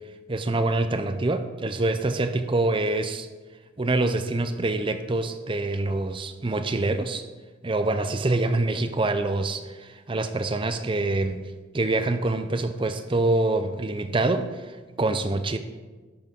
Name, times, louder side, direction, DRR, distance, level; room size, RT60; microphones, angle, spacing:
voice 1, 0.3-3.3 3.8-7.3 7.6-15.6, right 2 dB, 25° right, 10 dB, 0.5 m, -25 dB
12.0 x 6.2 x 5.3 m, 1.3 s
head